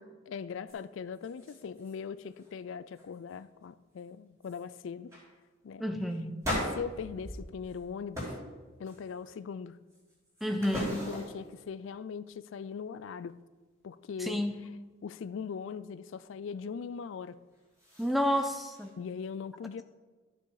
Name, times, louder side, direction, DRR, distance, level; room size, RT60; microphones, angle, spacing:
voice 1, 0.3-5.1 5.6-5.8 6.7-8.4 8.8-9.8 10.9-13.4 13.8-14.5 15.0-17.4 19.0-19.8, left 6 dB, 70° left, 15 dB, 0.4 m, -40 dB
sound 1, 0.7-0.8 1.1-1.9 2.2-2.6 2.9-3.4 4.0-4.1 4.4-4.6 5.1-5.3 6.4-7.8 8.1-8.5 8.8-9.3 9.9-11.5 17.5-18.9, equal, 15° right, 3.8 m, -39 dB
voice 2, 5.8-6.4 10.4-11.0 14.2-14.6 18.0-18.9, equal, ahead, 6 dB, 0.7 m, -30 dB
12.5 x 6.6 x 4.8 m, 1.3 s
head